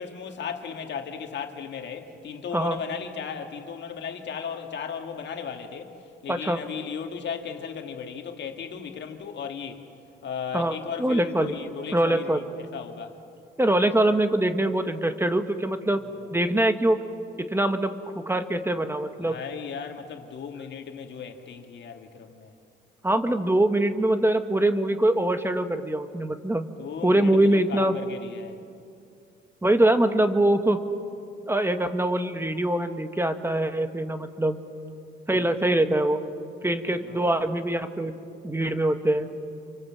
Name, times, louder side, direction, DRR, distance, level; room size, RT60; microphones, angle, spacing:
voice 1, 0.0-5.9 6.2-9.8 10.2-12.4 12.7-13.2 19.2-22.5 26.8-28.6 37.0-37.3, left 6 dB, 65° left, 2.2 m, -36 dB
voice 2, 10.5-11.5 11.9-12.4 13.6-16.0 16.3-17.0 17.4-19.3 23.0-26.7 27.0-27.9 29.6-30.8 31.5-34.6 35.3-36.2 36.6-38.1 38.4-39.3, right 1 dB, 10° right, 1.4 m, -23 dB
27.5 x 24.5 x 7.7 m
cardioid pair, 90°, 20 cm